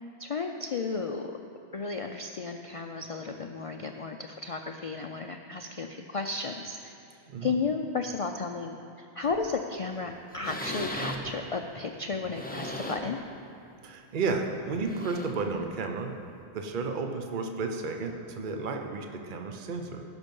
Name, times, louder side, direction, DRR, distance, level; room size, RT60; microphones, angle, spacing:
voice 1, 0.2-1.3 1.7-6.9 7.4-13.2, left 4 dB, 50° left, 4 dB, 0.4 m, -33 dB
voice 2, 7.3-7.6 13.8-16.1 16.5-20.0, right 4 dB, 50° right, 4 dB, 0.9 m, -32 dB
sound 1, 9.2-9.5 10.0-10.1 10.3-11.4 12.1-13.2 13.7-13.8 14.7-15.5 16.5-16.6, left 1 dB, 10° left, 0.7 m, -38 dB
17.5 x 6.1 x 5.3 m, 2.6 s
omnidirectional pair, 1.1 m